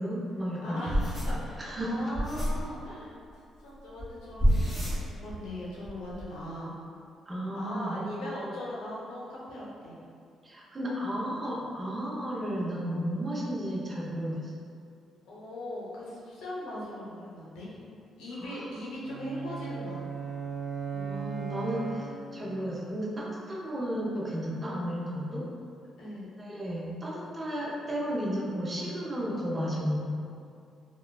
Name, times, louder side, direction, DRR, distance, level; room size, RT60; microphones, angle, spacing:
voice 1, 0.0-0.9 1.6-2.0 7.3-8.1 10.4-14.5 18.4-18.7 20.9-25.5 26.4-30.0, equal, 25° right, -5 dB, 0.6 m, -33 dB
voice 2, 0.6-3.2 3.6-4.7 5.1-6.8 7.5-10.0 15.3-17.8 18.2-20.0 26.0-26.3, left 1 dB, 90° left, -6 dB, 0.6 m, -39 dB
sound 1, 0.9-2.7 4.0-4.1 4.4-5.5 5.7-6.2, equal, 5° right, 1.3 m, -28 dB
sound 2, 19.0-22.5, right 5 dB, 75° right, 1.0 m, -37 dB
3.0 x 2.2 x 2.2 m, 2.4 s
cardioid pair, 90°, 0 cm